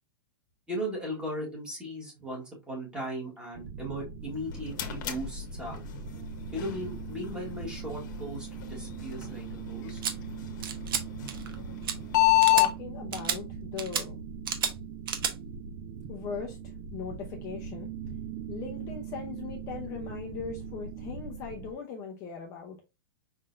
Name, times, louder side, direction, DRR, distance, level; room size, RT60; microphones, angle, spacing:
voice 1, 0.7-5.8 6.5-10.0, equal, 5° right, 1.5 m, -37 dB
sound 1, 3.5-21.7, right 6 dB, 25° right, 0.4 m, -41 dB
sound 2, 4.2-12.7, left 16 dB, 50° left, 1.1 m, -30 dB
sound 3, 10.0-10.1 10.6-11.0 11.3-11.6 11.8-11.9 12.4-12.7 13.1-13.4 13.8-14.0 14.5-14.7 15.1-15.3, right 7 dB, 65° right, 1.1 m, -30 dB
voice 2, 12.5-14.2 16.1-16.6 16.9-17.9 18.5-22.9, left 6 dB, 20° left, 0.6 m, -39 dB
5.5 x 3.7 x 2.5 m
supercardioid pair, 180°, 13 cm